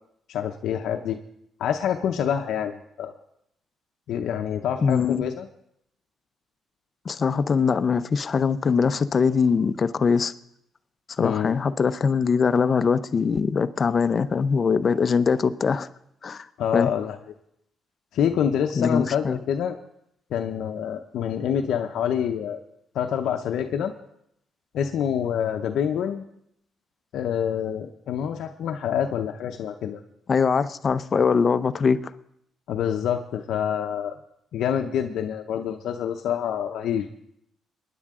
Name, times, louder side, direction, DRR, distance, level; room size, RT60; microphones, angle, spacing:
voice 1, 0.3-1.2 1.6-3.1 4.1-5.5 11.2-11.6 16.6-17.2 18.1-19.8 20.3-22.6 22.9-23.9 24.7-26.2 27.1-30.0 32.7-34.1 34.5-37.1, left 8 dB, 75° left, 0.7 m, -26 dB
voice 2, 4.8-5.2 7.0-10.3 11.2-15.9 16.2-16.5 16.7-16.9 18.7-19.4 30.3-32.1, left 5 dB, 40° left, 0.7 m, -22 dB
22.5 x 10.0 x 3.7 m
cardioid pair, 90°, 0 cm